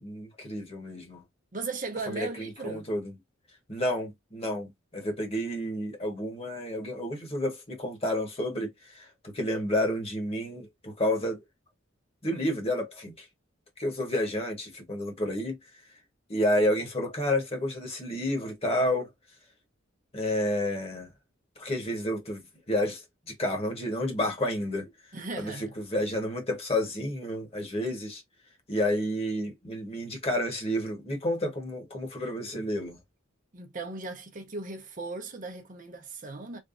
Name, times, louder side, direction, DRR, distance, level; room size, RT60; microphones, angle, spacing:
voice 1, 0.0-1.2 2.1-3.1 3.7-11.4 12.2-13.3 13.8-15.6 16.3-19.1 20.1-21.1 21.6-24.9 25.4-28.2 28.7-33.0, left 1 dB, 30° left, 1.3 m, -30 dB
voice 2, 1.5-2.9 25.1-25.7 33.5-36.6, right 3 dB, 40° right, 0.8 m, -37 dB
3.4 x 3.1 x 2.5 m
head